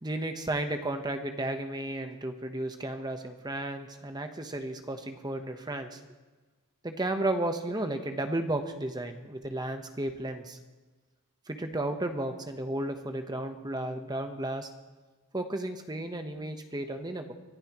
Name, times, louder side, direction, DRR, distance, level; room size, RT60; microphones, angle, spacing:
voice 1, 0.0-6.0 6.8-10.6 11.5-14.7 15.3-17.3, right 1 dB, 20° right, 6 dB, 1.1 m, -33 dB
24.5 x 14.5 x 3.1 m, 1.2 s
head